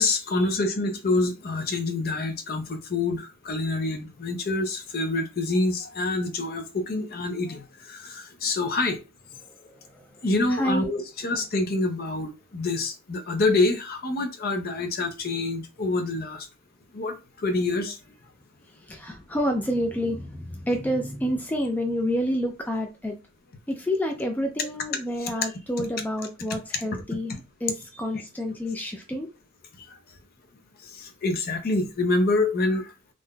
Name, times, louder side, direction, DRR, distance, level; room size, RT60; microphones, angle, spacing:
voice 1, 0.0-7.6 7.9-9.0 10.2-16.5 16.9-17.1 17.4-18.0 24.6-24.7 25.2-25.3 31.0-32.8, left 2 dB, 45° left, 6 dB, 0.6 m, -26 dB
voice 2, 10.5-10.8 18.9-23.2 23.7-29.3, equal, 10° left, 4 dB, 0.3 m, -28 dB
3.5 x 2.6 x 2.3 m, 0.28 s
head